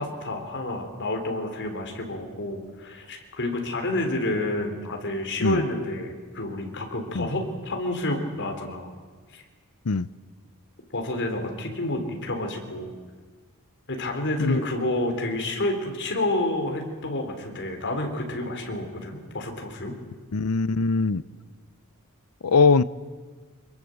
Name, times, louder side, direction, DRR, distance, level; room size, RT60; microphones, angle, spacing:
voice 1, 0.0-8.9 9.3-9.4 10.9-12.9 13.9-19.9, left 1 dB, 55° left, 3.9 m, -29 dB
voice 2, 20.3-21.2 22.4-22.8, left 4 dB, 85° left, 0.7 m, -21 dB
23.5 x 22.0 x 7.9 m
head